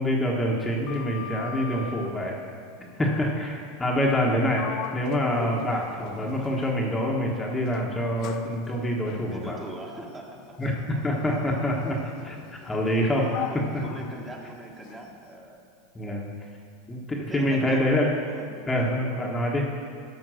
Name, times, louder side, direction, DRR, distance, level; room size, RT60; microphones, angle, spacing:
voice 1, 0.0-2.4 3.0-9.6 10.6-12.0 12.2-12.4 12.6-13.3 13.5-13.8 15.9-16.3 16.9-18.1 18.7-19.7, equal, 15° left, -1 dB, 1.3 m, -26 dB
Sliding door, 0.6-2.2 4.1-4.3 4.5-7.0 7.6-15.1, left 9 dB, 50° left, 0.6 m, -41 dB
voice 2, 9.3-10.7 11.3-11.4 13.3-15.6 16.9-17.8 18.3-18.8, right 1 dB, 15° right, 0 dB, 1.5 m, -42 dB
12.5 x 5.2 x 6.4 m, 2.3 s
hypercardioid pair, 110°, 0 cm